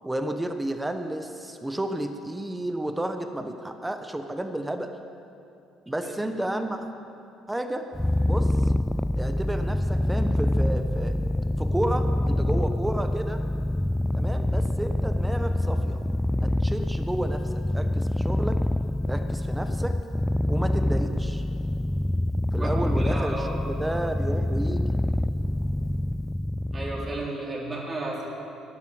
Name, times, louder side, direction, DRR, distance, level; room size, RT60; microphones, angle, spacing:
voice 1, 0.0-4.9 5.9-6.9 7.5-7.9 8.3-8.7 9.1-11.2 11.6-13.4 14.1-16.0 16.4-18.6 19.1-20.0 20.4-21.4 22.5-24.9, right 1 dB, 10° right, 7 dB, 1.1 m, -32 dB
voice 2, 6.0-6.3 22.6-23.6 26.7-28.3, right 2 dB, 30° right, -3 dB, 3.5 m, -33 dB
Purr, 7.9-27.3, left 1 dB, 10° left, 0.3 m, -26 dB
11.0 x 10.5 x 7.7 m, 2.6 s
hypercardioid pair, 55°, 0 cm